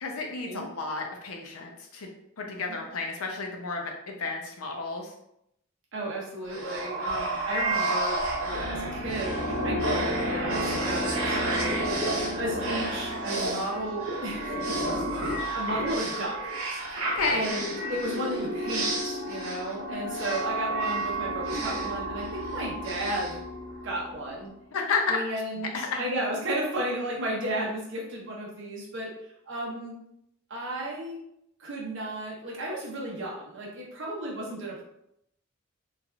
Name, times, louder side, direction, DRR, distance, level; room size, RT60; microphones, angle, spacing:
voice 1, 0.0-2.1 2.4-5.1 17.1-17.4 19.9-20.2 24.7-25.2 25.7-26.0, left 4 dB, 85° left, 2 dB, 0.6 m, -31 dB
voice 2, 5.9-16.5 17.3-23.4 23.8-24.5 25.1-29.2 29.5-30.0 30.5-31.2 31.6-34.8, right 1 dB, 60° right, -3 dB, 0.9 m, -34 dB
sound 1, 6.5-24.1, right 1 dB, 90° right, 0.8 m, -30 dB
3.3 x 2.4 x 2.3 m, 0.78 s
head